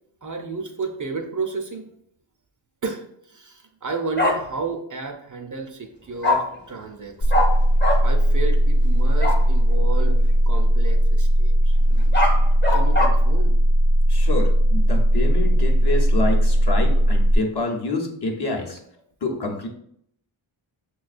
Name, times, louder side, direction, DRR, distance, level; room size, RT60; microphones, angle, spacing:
voice 1, 0.2-1.9 2.8-7.5 8.0-10.2 10.5-11.8 12.7-13.6, right 4 dB, 40° right, 4 dB, 0.5 m, -32 dB
Bark, 4.2-4.3 6.2-6.4 7.3-7.5 7.8-8.0 9.2-9.4 11.9-13.1, left 2 dB, 20° left, 0.7 m, -21 dB
sound 1, 7.2-17.4, equal, 85° left, 0.8 m, -18 dB
voice 2, 14.1-18.8 19.2-19.7, left 2 dB, 50° left, 0 dB, 0.9 m, -27 dB
5.7 x 2.2 x 2.4 m, 0.70 s
cardioid pair, 55°, 49 cm